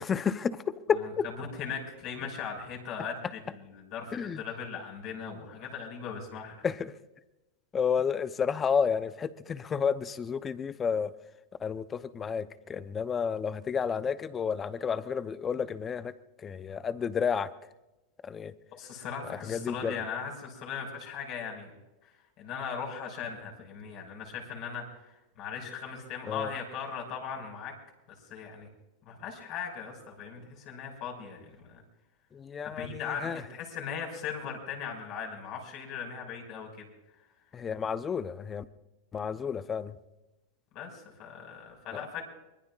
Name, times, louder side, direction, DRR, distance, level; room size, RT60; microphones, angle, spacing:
voice 1, 0.0-1.3 4.1-4.4 6.6-6.9 7.7-11.1 11.6-17.5 18.2-18.5 19.3-19.9 26.3-26.5 32.3-33.4 37.5-38.6 39.1-40.0 41.9-42.0, left 6 dB, 20° left, 14 dB, 0.7 m, -31 dB
voice 2, 1.4-6.7 18.7-21.7 22.0-22.1 22.4-27.7 28.3-28.7 29.0-31.8 32.6-36.9 40.7-42.3, left 6 dB, 45° left, 1 dB, 5.4 m, -39 dB
24.5 x 21.0 x 2.4 m, 1.0 s
supercardioid pair, 135°, 0 cm